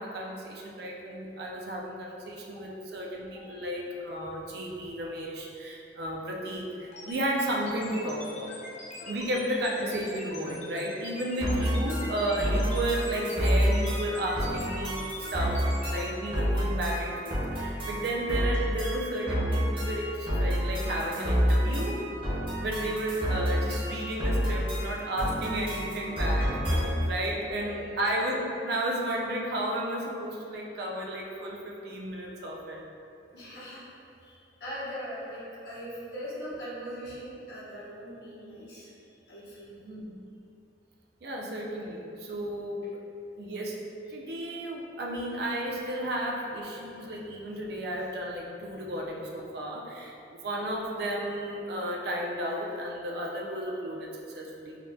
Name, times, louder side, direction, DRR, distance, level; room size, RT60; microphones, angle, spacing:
voice 1, 0.0-8.6 9.1-22.0 22.6-32.8 39.8-40.2 41.2-42.9 43.4-43.8 44.1-54.8, right 1 dB, 60° right, -1 dB, 0.4 m, -33 dB
voice 2, 3.3-3.7 9.0-9.1 27.6-28.0 33.3-33.9 34.2-38.9 39.3-39.7, equal, 70° left, -9 dB, 0.9 m, -41 dB
sound 1, 6.9-16.0, left 2 dB, 40° left, 0.6 m, -43 dB
sound 2, 11.4-27.1, equal, 30° right, 0.7 m, -29 dB
4.1 x 2.2 x 2.6 m, 2.6 s
head